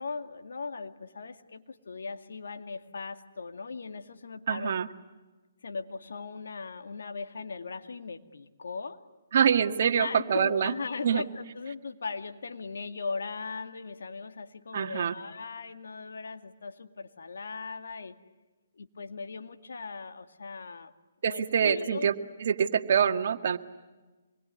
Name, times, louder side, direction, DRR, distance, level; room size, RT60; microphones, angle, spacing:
voice 1, 0.0-4.7 5.6-9.0 9.8-18.1 18.7-20.9 21.3-22.1, left 4 dB, 80° left, 8 dB, 2.2 m, -38 dB
voice 2, 4.5-4.9 9.3-10.7 11.0-11.2 14.7-15.2 21.2-22.1 22.4-23.6, right 7 dB, 55° right, 7 dB, 1.9 m, -25 dB
27.0 x 22.0 x 9.7 m, 1.2 s
hypercardioid pair, 155°, 0 cm